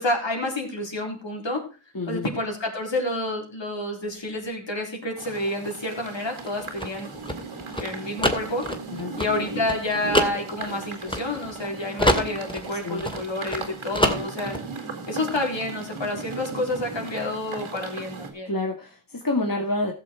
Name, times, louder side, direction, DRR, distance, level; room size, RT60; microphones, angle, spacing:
voice 1, 0.0-1.6 2.1-7.1 7.8-8.7 9.2-14.6 15.1-18.5, left 1 dB, 65° left, 1 dB, 4.1 m, -29 dB
voice 2, 1.9-2.3 8.9-9.2 12.8-13.0 18.4-19.9, left 2 dB, 45° left, 0 dB, 2.2 m, -28 dB
sound 1, 5.2-18.3, right 4 dB, 90° right, 2.5 m, -37 dB
sound 2, 6.4-11.7 12.0-13.7 13.9-14.6, equal, 10° left, 2.3 m, -26 dB
15.5 x 6.9 x 4.5 m, 0.34 s
cardioid pair, 40°, 47 cm